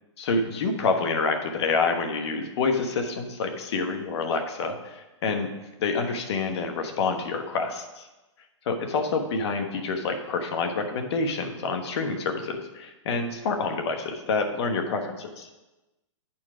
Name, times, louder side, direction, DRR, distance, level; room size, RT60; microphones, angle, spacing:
voice 1, 0.2-5.5 5.8-8.1 8.7-15.5, left 4 dB, 60° left, 4 dB, 1.2 m, -27 dB
8.8 x 4.5 x 4.9 m, 1.1 s
hypercardioid pair, 145°, 16 cm